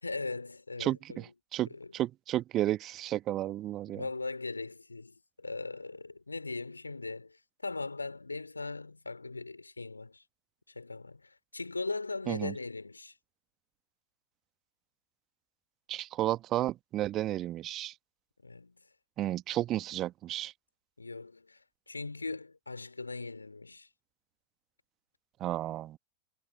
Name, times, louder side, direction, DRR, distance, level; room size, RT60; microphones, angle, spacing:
voice 1, 0.0-1.2 1.7-1.9 3.9-10.2 10.7-13.1 18.4-18.8 21.0-23.9, left 3 dB, 80° left, 4.1 m, -39 dB
voice 2, 0.8-1.7 1.9-4.0 12.3-12.5 15.9-17.9 19.2-20.5 25.4-26.0, right 13 dB, 35° right, 1.5 m, -32 dB
figure-of-eight pair, 90°, 0 cm